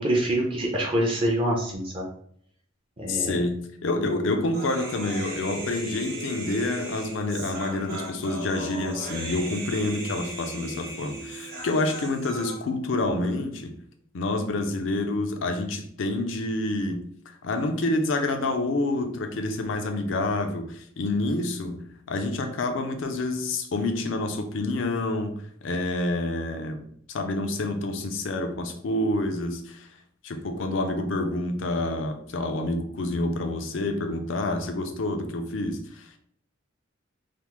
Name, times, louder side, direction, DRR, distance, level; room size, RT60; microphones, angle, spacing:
voice 1, 0.0-2.1 3.0-3.4 4.0-4.1, right 1 dB, 25° right, -1 dB, 0.5 m, -25 dB
voice 2, 3.1-13.7 14.1-29.9 30.2-36.2, left 2 dB, 70° left, 6 dB, 0.5 m, -28 dB
Human voice, 4.5-12.5, right 1 dB, 50° right, 1.1 m, -37 dB
3.4 x 2.0 x 2.9 m, 0.65 s
head